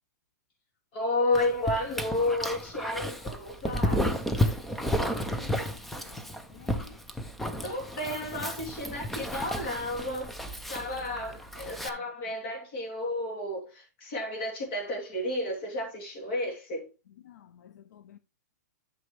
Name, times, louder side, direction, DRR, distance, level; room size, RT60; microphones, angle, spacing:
voice 1, 0.9-4.2 7.6-10.3 10.7-16.8, left 1 dB, 35° left, 3.0 m, -32 dB
Dog, 1.3-11.9, equal, ahead, 0.4 m, -32 dB
voice 2, 4.9-7.0 11.0-11.2 11.8-11.9 17.2-18.2, left 10 dB, 65° left, 0.6 m, -53 dB
11.0 x 6.3 x 3.2 m
hypercardioid pair, 175°, 10 cm